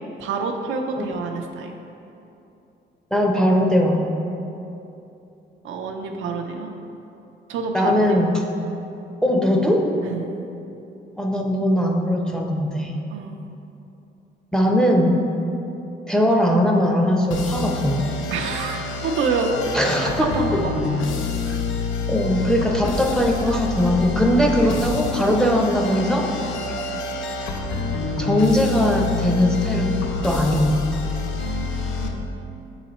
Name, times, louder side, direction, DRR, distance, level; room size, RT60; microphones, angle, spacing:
voice 1, 0.2-1.7 5.6-6.7 7.5-8.0 10.0-10.2 13.1-13.4 18.3-19.7 20.0-21.3 26.5-26.8 31.4-32.3, right 4 dB, 80° right, 3 dB, 0.6 m, -28 dB
voice 2, 3.1-4.0 7.7-8.4 9.2-9.9 11.2-12.9 14.5-15.2 16.1-18.1 19.7-20.6 21.5-21.6 22.1-26.3 28.2-30.0 30.2-30.8, equal, 5° left, 1 dB, 0.6 m, -20 dB
sound 1, 17.3-32.1, left 4 dB, 75° left, 0.6 m, -27 dB
6.3 x 4.0 x 4.2 m, 2.8 s
cardioid pair, 90°, 20 cm